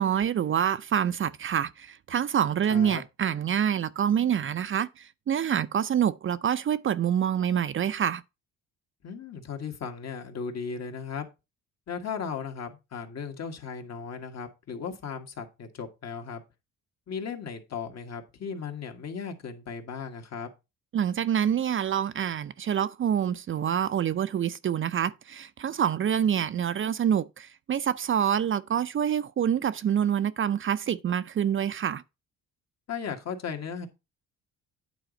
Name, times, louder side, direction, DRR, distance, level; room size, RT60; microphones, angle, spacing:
voice 1, 0.0-8.2 20.9-32.0, right 9 dB, 40° right, 0.5 m, -26 dB
voice 2, 2.7-3.0 9.0-11.3 11.9-16.4 17.1-20.5 32.9-33.9, left 6 dB, 55° left, 1.7 m, -36 dB
9.1 x 4.1 x 5.1 m
cardioid pair, 90°, 32 cm